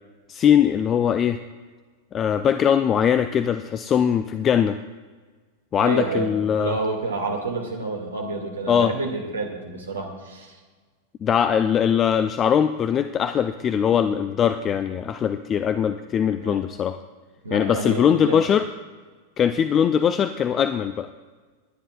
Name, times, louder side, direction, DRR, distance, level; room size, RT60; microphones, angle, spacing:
voice 1, 0.3-1.4 2.1-4.8 5.7-6.8 8.7-8.9 11.2-17.0 17.5-18.7 19.4-21.1, left 8 dB, 25° left, 10 dB, 0.5 m, -21 dB
voice 2, 5.8-10.6 16.4-16.6 17.4-18.4, right 3 dB, 70° right, 2 dB, 2.2 m, -29 dB
29.5 x 10.0 x 2.4 m, 1.4 s
figure-of-eight pair, 90°, 0 cm